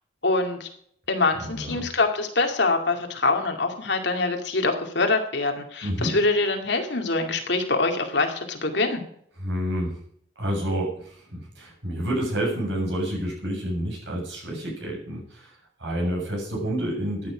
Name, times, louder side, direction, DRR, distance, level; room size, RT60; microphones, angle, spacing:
voice 1, 0.2-0.7 1.1-9.0, left 3 dB, 65° left, 4 dB, 2.3 m, -24 dB
voice 2, 1.4-1.9 5.8-6.1 9.4-10.0 10.4-17.3, equal, 65° right, -2 dB, 7.1 m, -29 dB
14.5 x 9.9 x 5.0 m, 0.66 s
head